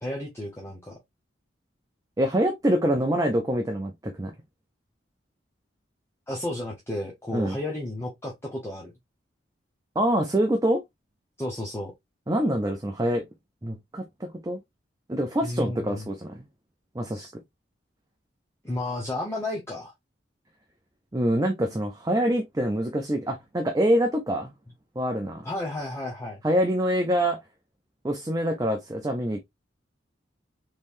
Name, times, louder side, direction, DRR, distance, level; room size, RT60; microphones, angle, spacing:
voice 1, 0.0-1.0 6.3-8.9 11.4-11.9 15.4-16.1 17.1-17.3 18.6-19.9 25.4-26.4, left 1 dB, 15° left, 0.8 m, -33 dB
voice 2, 2.2-4.3 7.3-7.6 10.0-10.8 12.3-13.2 13.6-14.6 15.1-16.4 16.9-17.3 21.1-24.5 25.0-25.4 26.4-27.4 28.0-29.4, equal, 20° right, 0.5 m, -25 dB
3.7 x 3.1 x 2.5 m
head